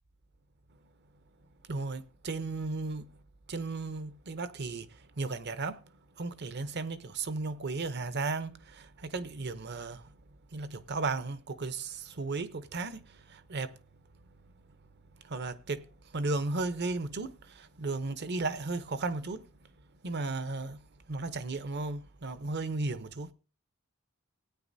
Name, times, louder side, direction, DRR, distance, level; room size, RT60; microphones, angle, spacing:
voice 1, 1.7-3.1 3.5-4.9 5.2-5.8 6.2-10.0 10.5-13.0 13.3-13.7 15.2-15.9 16.1-19.4 20.0-20.8 21.1-23.3, right 3 dB, 50° right, 0.8 m, -35 dB
17.5 x 9.3 x 2.7 m
head